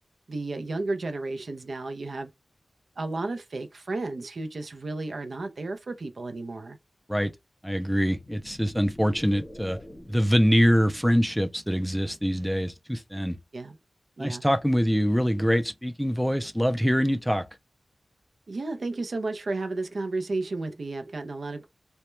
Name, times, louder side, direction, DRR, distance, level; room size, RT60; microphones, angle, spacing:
voice 1, 0.3-2.3 3.0-6.8 13.5-13.8 14.2-14.4 18.5-21.7, right 2 dB, 70° right, 0.4 m, -33 dB
voice 2, 7.6-9.8 10.1-13.4 14.2-17.5, equal, ahead, 0.3 m, -24 dB
sound 1, 7.9-10.5, left 1 dB, 35° left, 0.9 m, -46 dB
2.2 x 2.1 x 3.0 m
wide cardioid pair, 70°, 0 cm